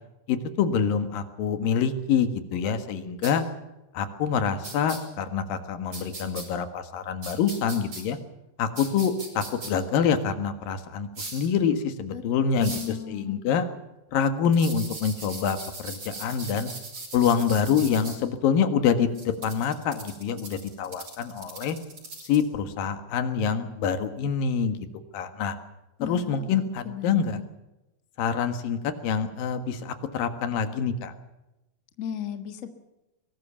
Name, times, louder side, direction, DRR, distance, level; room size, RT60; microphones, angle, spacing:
voice 1, 0.3-3.4 3.9-8.2 8.6-13.7 14.1-16.7 17.1-21.8 22.2-24.8 25.1-25.6 26.0-27.4 28.2-31.1, left 7 dB, 70° left, 9 dB, 3.2 m, -26 dB
sound 1, 3.2-3.3 4.6-5.0 5.9-6.4 7.2-8.0 8.8-9.7 11.1-11.5 12.6-12.9 14.5-18.2 19.1-22.4, right 3 dB, 35° right, 6.0 m, -39 dB
voice 2, 12.5-13.4 26.0-27.4 32.0-32.7, left 9 dB, 85° left, 7 dB, 0.7 m, -36 dB
23.0 x 18.5 x 7.0 m, 0.98 s
omnidirectional pair, 4.4 m